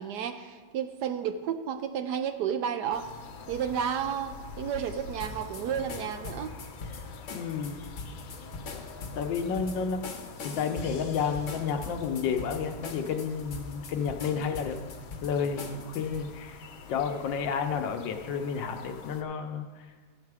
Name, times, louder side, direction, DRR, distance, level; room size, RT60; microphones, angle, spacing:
voice 1, 0.0-3.1 3.5-6.5, right 8 dB, 70° right, 9 dB, 1.0 m, -32 dB
sound 1, 2.9-19.2, left 4 dB, 90° left, 1.6 m, -47 dB
sound 2, 5.2-16.3, left 4 dB, 50° left, 1.0 m, -42 dB
voice 2, 7.3-7.8 9.1-14.8 15.2-16.6 16.9-19.9, left 6 dB, 75° left, 5 dB, 1.3 m, -31 dB
14.0 x 6.5 x 4.7 m, 1.5 s
omnidirectional pair, 2.1 m